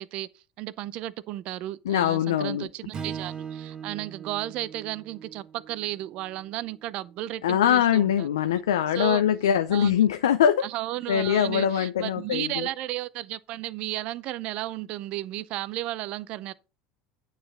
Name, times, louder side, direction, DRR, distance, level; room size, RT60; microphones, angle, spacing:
voice 1, 0.0-8.3 8.9-9.2 9.7-9.9 10.6-16.5, right 15 dB, 55° right, 0.6 m, -34 dB
voice 2, 1.9-2.7 7.4-10.6 11.1-12.7, left 9 dB, 80° left, 0.5 m, -23 dB
Strum, 2.9-7.3, right 7 dB, 40° right, 1.1 m, -40 dB
9.1 x 4.9 x 5.1 m
hypercardioid pair, 75°, 2 cm